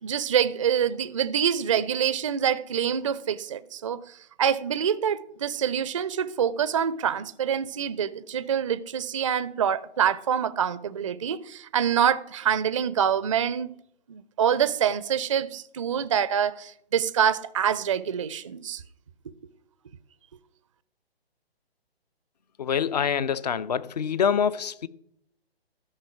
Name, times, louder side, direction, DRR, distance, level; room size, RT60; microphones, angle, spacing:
voice 1, 0.0-13.7 14.1-18.8, right 8 dB, 30° right, 0.4 m, -26 dB
voice 2, 22.6-24.9, left 7 dB, 40° left, 0.5 m, -25 dB
12.5 x 5.5 x 5.9 m
figure-of-eight pair, 135°, 31 cm